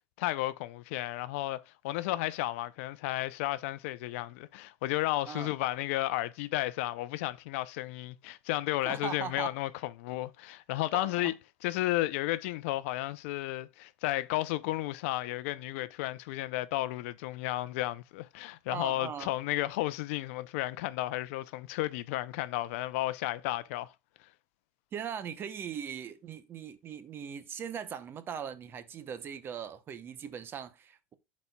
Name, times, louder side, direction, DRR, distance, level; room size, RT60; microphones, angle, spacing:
voice 1, 0.2-11.3 11.6-23.9, left 16 dB, 80° left, 0.5 m, -33 dB
voice 2, 8.8-9.5 10.9-11.3 18.7-19.3 24.9-31.1, right 8 dB, 35° right, 0.7 m, -40 dB
11.0 x 4.2 x 2.2 m
supercardioid pair, 135°, 7 cm